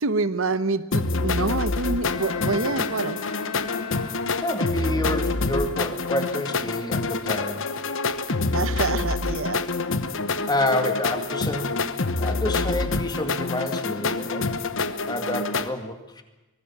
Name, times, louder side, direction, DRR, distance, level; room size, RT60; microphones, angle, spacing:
voice 1, 0.0-3.2 8.3-9.6, right 3 dB, 65° right, 14 dB, 1.0 m, -27 dB
sound 1, 0.9-15.7, left 3 dB, 60° left, 1.2 m, -27 dB
Bowed string instrument, 2.0-4.8, left 8 dB, 80° left, 4.5 m, -38 dB
voice 2, 4.4-7.7 10.5-11.8 12.2-14.5 15.1-16.2, left 1 dB, 20° left, 7 dB, 2.2 m, -28 dB
24.5 x 18.5 x 7.4 m, 1.0 s
head